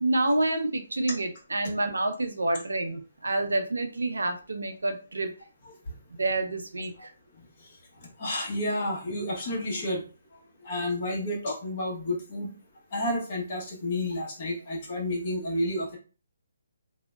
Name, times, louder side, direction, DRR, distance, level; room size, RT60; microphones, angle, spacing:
voice 1, 0.0-5.3 6.2-7.1, right 2 dB, 85° right, 7 dB, 0.5 m, -28 dB
voice 2, 8.2-10.0 10.6-12.5 12.9-16.0, left 1 dB, 45° left, -1 dB, 1.0 m, -30 dB
2.6 x 2.1 x 2.2 m, 0.35 s
figure-of-eight pair, 145°, 0 cm